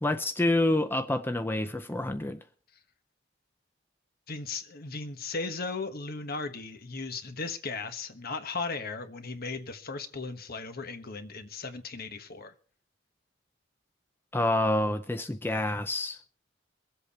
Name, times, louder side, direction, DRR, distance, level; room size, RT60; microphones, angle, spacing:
voice 1, 0.0-2.4 14.3-16.2, left 1 dB, 10° left, 0.5 m, -27 dB
voice 2, 4.3-12.5, left 4 dB, 50° left, 1.3 m, -36 dB
23.5 x 8.0 x 4.2 m
head